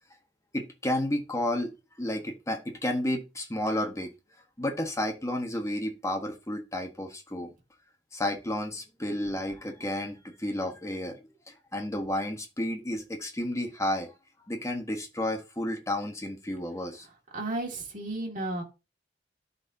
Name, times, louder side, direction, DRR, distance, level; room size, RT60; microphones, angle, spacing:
voice 1, 0.5-4.1 4.6-7.5 8.1-11.2 11.5-14.1 14.5-17.0, left 1 dB, 15° left, 1.3 m, -31 dB
voice 2, 17.3-18.6, right 2 dB, 50° right, 2.1 m, -33 dB
12.5 x 4.2 x 2.7 m
head